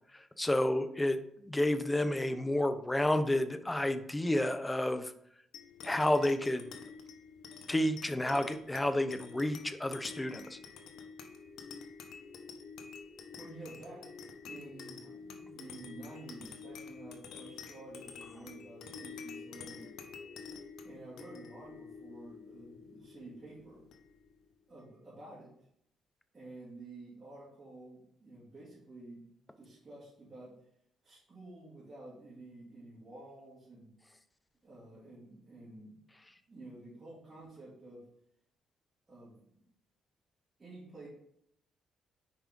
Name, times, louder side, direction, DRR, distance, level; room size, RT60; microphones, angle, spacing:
voice 1, 0.4-1.2 1.5-5.1 5.8-6.7 7.7-10.6, left 1 dB, 15° left, 10 dB, 0.6 m, -30 dB
sound 1, 5.5-24.4, left 5 dB, 80° left, 0.8 m, -49 dB
voice 2, 13.4-14.1 14.4-19.9 20.8-23.8 24.7-25.5 26.3-29.3 29.6-30.6 31.0-34.0 34.6-36.0 36.5-38.1 39.1-39.5 40.6-41.1, right 2 dB, 30° right, -9 dB, 2.6 m, -50 dB
5.9 x 4.9 x 3.7 m, 0.73 s
cardioid pair, 90°, 0 cm